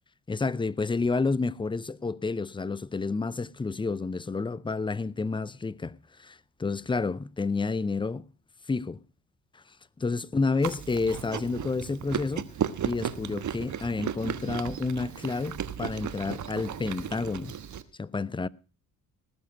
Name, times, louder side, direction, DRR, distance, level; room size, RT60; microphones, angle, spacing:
voice 1, 0.3-8.3 8.7-9.0 10.0-12.5 12.8-17.6 18.0-18.5, left 4 dB, 10° left, 0.6 m, -30 dB
Chewing mastication, 10.6-17.8, right 9 dB, 50° right, 1.3 m, -35 dB
19.0 x 7.2 x 5.9 m
hypercardioid pair, 55°, 39 cm